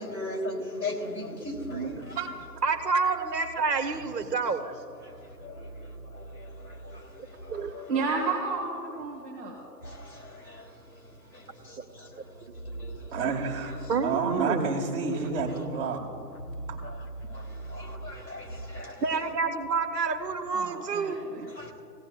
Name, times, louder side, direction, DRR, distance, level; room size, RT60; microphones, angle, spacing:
voice 1, 0.0-2.2 5.4-5.6 7.4-8.1 9.8-9.9 12.8-12.9 17.7-18.5 18.7-19.2 21.6-21.7, left 1 dB, 90° left, -3 dB, 3.6 m, -36 dB
voice 2, 1.7-2.0 2.6-4.7 7.5-7.7 13.9-14.8 19.0-21.2, right 4 dB, 70° right, 7 dB, 1.4 m, -28 dB
voice 3, 7.9-9.6 20.5-21.5, right 4 dB, 15° right, -3 dB, 1.3 m, -31 dB
voice 4, 12.0-12.3 13.1-13.8 14.0-16.0 16.7-16.8, right 5 dB, 35° right, 0 dB, 1.9 m, -30 dB
18.5 x 17.0 x 2.4 m, 2.7 s
hypercardioid pair, 145°, 49 cm